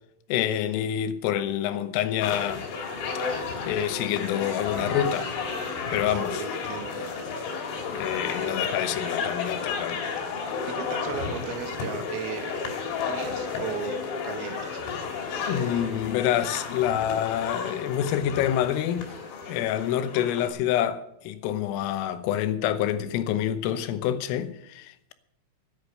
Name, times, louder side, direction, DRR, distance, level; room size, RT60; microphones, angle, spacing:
voice 1, 0.3-2.7 3.7-5.3 5.9-6.4 7.9-10.0 15.5-19.1 19.5-25.1, left 11 dB, 90° left, 3.6 m, -27 dB
sound 1, 2.2-20.5, left 5 dB, 70° left, 5.0 m, -32 dB
voice 2, 6.1-7.0 10.7-12.5 13.1-14.8, right 8 dB, 90° right, 4.4 m, -36 dB
15.0 x 10.5 x 6.7 m
omnidirectional pair, 5.8 m